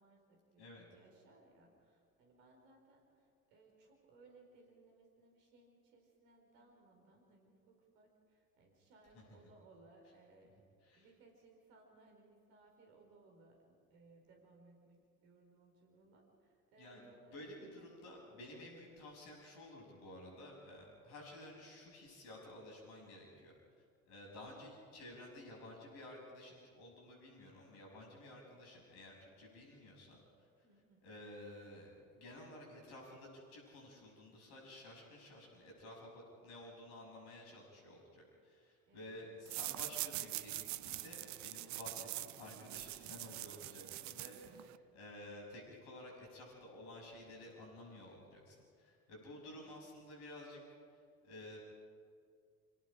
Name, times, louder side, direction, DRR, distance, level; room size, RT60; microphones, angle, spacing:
voice 1, 0.0-10.5 10.9-17.9 18.6-18.7 30.6-31.1 38.9-39.2 44.4-44.8 49.4-49.7, right 3 dB, 60° right, 2 dB, 4.6 m, -65 dB
voice 2, 17.3-23.5 24.1-30.2 31.0-50.6 50.9-51.6, left 1 dB, 60° left, -1 dB, 6.6 m, -53 dB
sound 1, 39.5-44.8, right 16 dB, 40° right, 0.7 m, -44 dB
29.5 x 17.5 x 5.0 m, 2.3 s
figure-of-eight pair, 55°, 43 cm